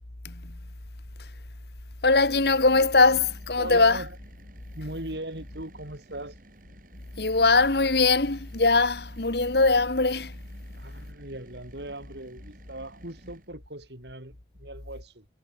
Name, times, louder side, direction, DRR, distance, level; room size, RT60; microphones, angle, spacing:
voice 1, 0.2-0.6 1.2-1.3 2.0-4.0 7.2-10.4, left 3 dB, 65° left, 1.7 m, -21 dB
sound 1, 2.3-13.5, right 1 dB, 50° right, 3.5 m, -53 dB
voice 2, 3.6-4.2 4.8-6.3 10.7-15.2, right 1 dB, 75° right, 6.7 m, -39 dB
head